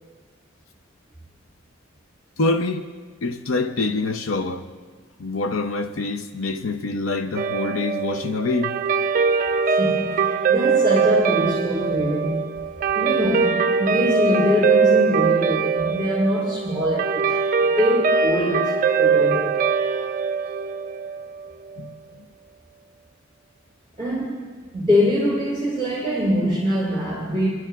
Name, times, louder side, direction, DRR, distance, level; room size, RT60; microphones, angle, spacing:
voice 1, 2.4-2.9 3.2-4.7 5.2-8.8 21.8-22.2, left 3 dB, 85° left, 0.6 m, -25 dB
Guitar, 7.4-21.9, right 5 dB, 45° right, 0.4 m, -22 dB
voice 2, 9.8-12.6 12.9-17.5 17.8-19.6 24.0-24.5 24.7-27.5, equal, 20° left, 3.1 m, -23 dB
29.0 x 11.5 x 2.4 m
head